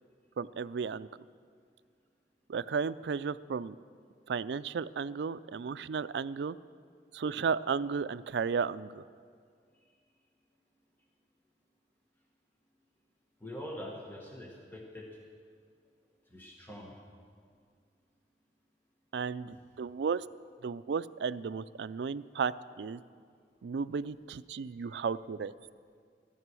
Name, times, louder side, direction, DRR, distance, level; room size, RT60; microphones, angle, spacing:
voice 1, 0.4-1.1 2.5-3.8 4.3-6.6 7.1-9.0 19.1-20.2 20.6-22.5 22.8-23.0 23.6-25.5, right 5 dB, 75° right, 15 dB, 0.4 m, -34 dB
voice 2, 13.4-15.1 16.3-16.9 19.5-19.6 24.9-25.0, left 1 dB, 10° left, -1 dB, 1.3 m, -44 dB
14.5 x 12.5 x 6.2 m, 2.1 s
head